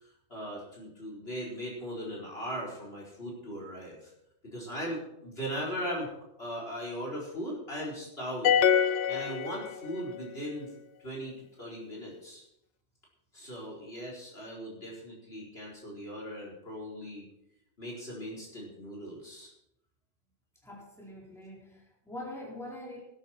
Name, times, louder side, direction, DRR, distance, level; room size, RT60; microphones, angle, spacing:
voice 1, 0.3-4.1 4.4-6.1 6.4-10.7 11.0-12.4 13.3-17.2 17.8-19.5, equal, 45° left, -3 dB, 4.7 m, -39 dB
sound 1, 8.4-10.2, left 8 dB, 65° left, 0.9 m, -25 dB
voice 2, 20.6-23.0, left 1 dB, ahead, -5 dB, 4.4 m, -43 dB
19.0 x 9.8 x 4.4 m, 0.81 s
omnidirectional pair, 1.4 m